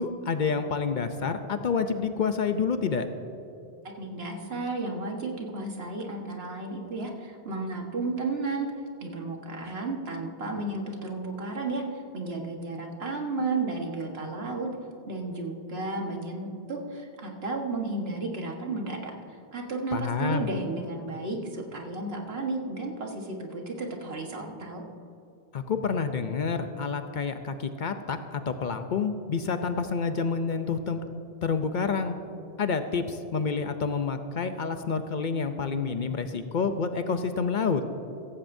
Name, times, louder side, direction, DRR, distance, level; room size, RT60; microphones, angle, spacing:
voice 1, 0.0-3.1 19.9-20.6 25.5-31.0 31.4-32.1 32.6-37.8, left 5 dB, 55° left, 8 dB, 0.7 m, -28 dB
voice 2, 4.0-8.7 9.0-14.7 15.1-24.8, right 3 dB, 75° right, 1 dB, 1.7 m, -33 dB
15.5 x 15.0 x 2.7 m, 2.7 s
omnidirectional pair, 1.0 m